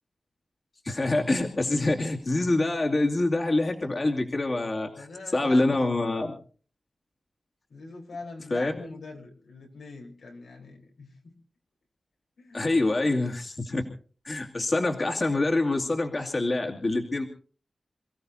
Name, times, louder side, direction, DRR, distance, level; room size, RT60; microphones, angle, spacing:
voice 1, 0.8-5.1 5.3-6.3 8.5-8.7 12.5-13.8 14.2-17.2, left 2 dB, 35° left, 1 dB, 2.4 m, -25 dB
voice 2, 4.9-5.9 7.7-11.3 12.4-12.7, left 3 dB, 85° left, 1 dB, 4.3 m, -43 dB
28.5 x 16.5 x 2.8 m, 0.42 s
wide cardioid pair, 125°, 0 cm